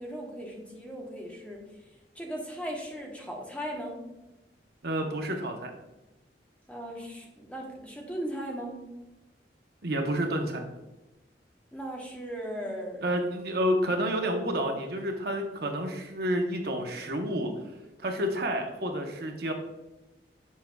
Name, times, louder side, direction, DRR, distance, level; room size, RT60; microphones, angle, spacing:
voice 1, 0.0-1.6 2.1-4.0 6.7-8.8 11.7-13.0, equal, 5° left, -1 dB, 0.9 m, -37 dB
voice 2, 4.8-5.7 9.8-10.7 13.0-17.5 18.0-19.5, equal, 60° right, 3 dB, 0.8 m, -29 dB
7.4 x 5.9 x 2.3 m, 1.0 s
head